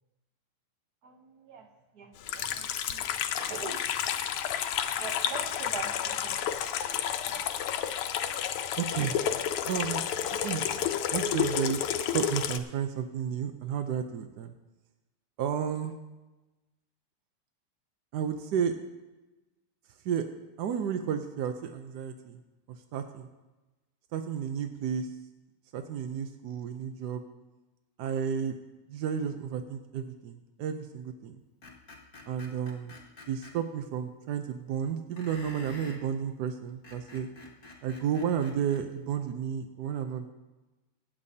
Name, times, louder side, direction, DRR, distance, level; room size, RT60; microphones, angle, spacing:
voice 1, 1.0-3.1 3.4-3.9 4.9-6.7 7.3-8.0, right 6 dB, 55° right, 5 dB, 1.4 m, -44 dB
Water tap faucet / Sink (filling or washing), 2.2-12.6, left 9 dB, 85° left, 1.6 m, -31 dB
voice 2, 8.8-9.2 9.6-10.0 10.3-10.7 11.1-14.5 15.4-15.9 18.1-18.8 20.0-20.3 20.6-22.4 22.9-23.3 24.1-25.1 25.7-27.2 28.0-28.6 28.9-31.4 32.3-32.9 33.3-37.3 37.8-40.3, right 8 dB, 75° right, 7 dB, 0.9 m, -32 dB
Screech, 31.6-33.5 35.2-36.0 36.7-38.8, left 2 dB, 45° left, 1.9 m, -48 dB
24.0 x 8.6 x 2.8 m, 1.1 s
omnidirectional pair, 2.4 m